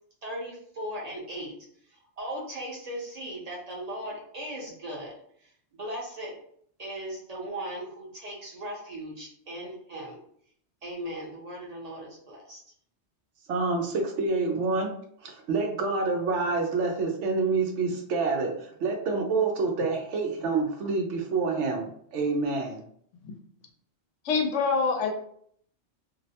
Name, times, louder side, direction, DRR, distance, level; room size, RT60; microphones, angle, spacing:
voice 1, 0.2-1.5 1.9-5.1 5.4-6.3 6.8-10.2 10.8-12.6, right 1 dB, 40° right, -3 dB, 0.7 m, -38 dB
voice 2, 13.5-14.9 15.2-22.8, right 4 dB, 85° right, 2 dB, 0.9 m, -27 dB
voice 3, 24.2-25.1, left 4 dB, 85° left, 3 dB, 0.9 m, -25 dB
2.6 x 2.0 x 2.8 m, 0.64 s
omnidirectional pair, 1.2 m